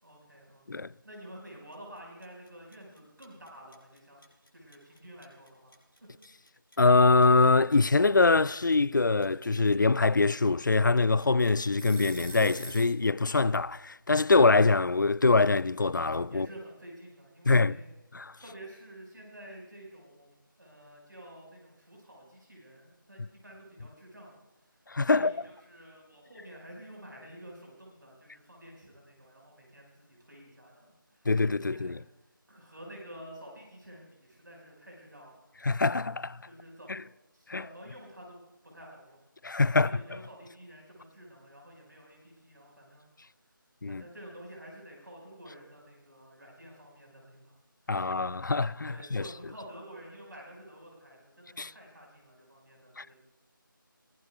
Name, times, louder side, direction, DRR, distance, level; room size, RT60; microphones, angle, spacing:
voice 1, 0.0-5.8 16.3-17.9 18.4-31.3 31.6-32.0 32.5-35.5 36.5-37.0 37.3-38.4 38.6-39.2 39.7-43.3 43.9-47.6 48.0-53.2, equal, 60° right, 5.2 m, -50 dB
sound 1, 1.7-13.0, right 1 dB, 85° left, 6.0 m, -46 dB
voice 2, 6.8-16.5 17.5-17.8 18.1-18.3 24.9-25.3 31.3-32.0 35.6-36.4 36.9-37.0 37.5-37.6 39.4-39.9 43.8-44.0 47.9-49.2 51.6-51.7 53.0-53.1, left 3 dB, 60° left, 0.4 m, -24 dB
22.5 x 18.0 x 2.3 m
figure-of-eight pair, 165°, 12 cm